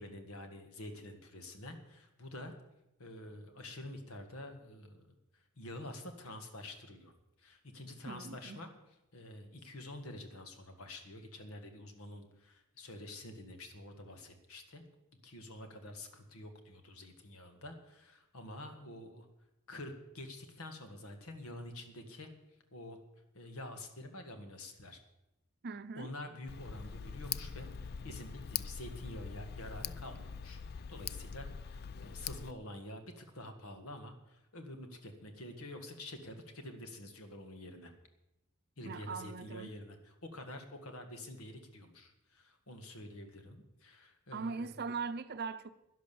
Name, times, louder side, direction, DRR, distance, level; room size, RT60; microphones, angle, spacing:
voice 1, 0.0-2.5 3.0-7.1 7.4-8.7 9.1-14.8 15.2-19.3 19.7-22.3 22.7-23.0 23.3-25.0 26.0-37.9 38.8-44.7, left 1 dB, 75° left, 1.9 m, -48 dB
voice 2, 8.1-8.6 25.6-26.1 38.8-39.7 44.3-45.7, right 4 dB, 50° right, 0.7 m, -40 dB
Tick, 26.5-32.5, left 7 dB, 45° left, 0.4 m, -43 dB
11.5 x 10.5 x 7.0 m
head